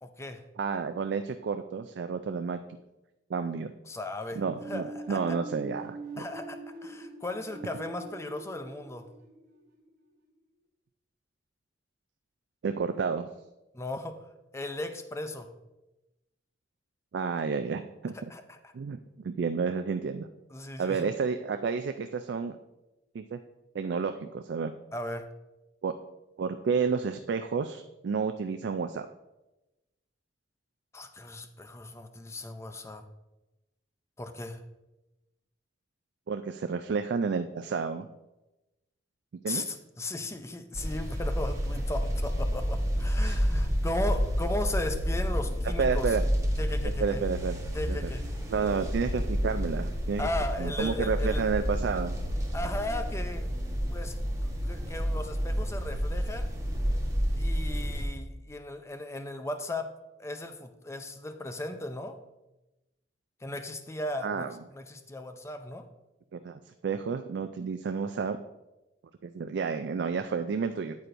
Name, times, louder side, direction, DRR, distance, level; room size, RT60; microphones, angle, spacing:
voice 1, 0.0-0.4 3.8-5.4 6.2-9.1 13.7-14.2 14.5-15.5 18.3-18.6 20.5-21.1 24.9-25.3 30.9-33.0 34.2-34.6 39.5-46.1 46.6-47.2 47.7-48.3 50.2-51.5 52.5-53.5 53.9-54.1 54.4-56.5 57.3-59.9 60.2-62.2 63.4-65.9, left 1 dB, 15° left, 8 dB, 0.5 m, -36 dB
voice 2, 0.6-2.6 3.3-3.7 4.4-6.0 12.6-13.3 17.1-18.1 18.7-19.0 19.2-20.3 20.8-22.6 23.1-23.4 23.7-24.7 25.8-25.9 26.4-29.1 36.3-38.1 39.4-39.6 43.2-43.4 45.8-46.2 47.0-47.6 47.9-48.1 48.5-50.3 50.6-52.2 64.2-64.5 66.3-68.4 69.2-71.0, right 5 dB, 70° right, 8 dB, 0.4 m, -30 dB
sound 1, 4.4-10.1, right 1 dB, 55° right, 1.0 m, -43 dB
sound 2, 40.7-58.0, equal, 20° right, 1.2 m, -30 dB
8.8 x 8.3 x 2.6 m, 1.0 s
head